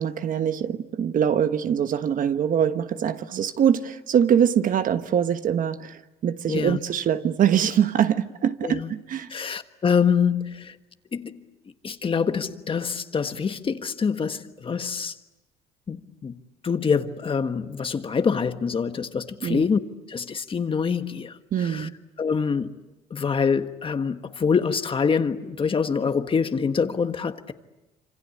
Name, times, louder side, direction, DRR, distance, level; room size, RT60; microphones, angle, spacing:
voice 1, 0.0-9.3 19.4-19.6 21.5-21.9, right 8 dB, 50° right, 1.3 m, -23 dB
voice 2, 6.5-6.8 8.6-8.9 9.3-10.8 11.1-11.4 11.8-15.1 15.9-19.8 20.1-21.9 22.2-22.8 23.1-27.5, left 6 dB, 30° left, 1.5 m, -25 dB
27.0 x 26.0 x 8.6 m
cardioid pair, 110°, 17 cm